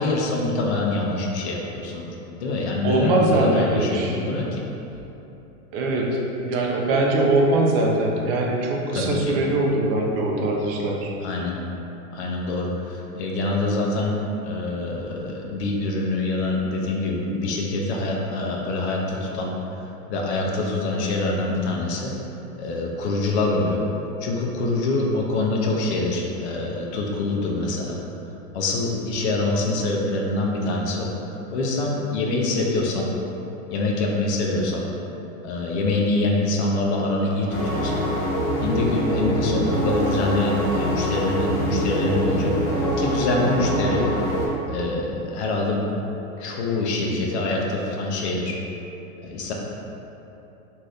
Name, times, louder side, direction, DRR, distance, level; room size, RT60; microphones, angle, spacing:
voice 1, 0.0-2.1 2.4-4.6 8.9-9.4 11.2-11.6 12.1-19.5 20.1-22.1 22.6-23.8 24.2-28.0 28.5-33.1 33.7-34.9 35.4-38.0 38.6-42.5 43.0-44.1 44.7-45.8 46.4-48.6 49.2-49.5, left 2 dB, 50° left, -1 dB, 0.5 m, -25 dB
voice 2, 2.8-4.2 5.7-6.2 6.4-11.1, right 2 dB, 45° right, -1 dB, 0.5 m, -22 dB
sound 1, 37.5-44.5, equal, 30° left, 0.9 m, -24 dB
2.6 x 2.6 x 3.3 m, 3.0 s
hypercardioid pair, 135°, 43 cm